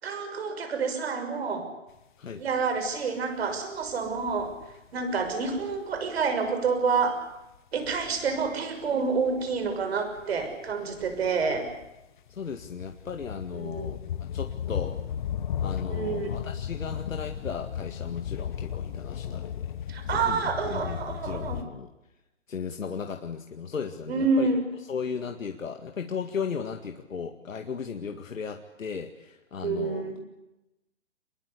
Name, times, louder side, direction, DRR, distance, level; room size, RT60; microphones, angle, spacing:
voice 1, 0.0-1.7 2.4-4.5 4.9-7.2 7.7-11.7 13.5-13.9 15.9-16.3 19.9-21.6 24.1-24.6 29.6-30.2, right 4 dB, 55° right, 7 dB, 6.4 m, -28 dB
sound 1, 2.8-2.9 3.5-4.9 5.2-6.5 7.8-8.5 8.8-11.9 12.3-21.6, left 9 dB, 40° left, 1.4 m, -35 dB
voice 2, 12.3-14.0 14.3-15.0 15.6-19.7 20.1-21.9 22.5-24.5 24.9-30.1, left 6 dB, 90° left, 4 dB, 2.2 m, -36 dB
26.0 x 21.5 x 8.4 m, 0.95 s
hypercardioid pair, 160°, 38 cm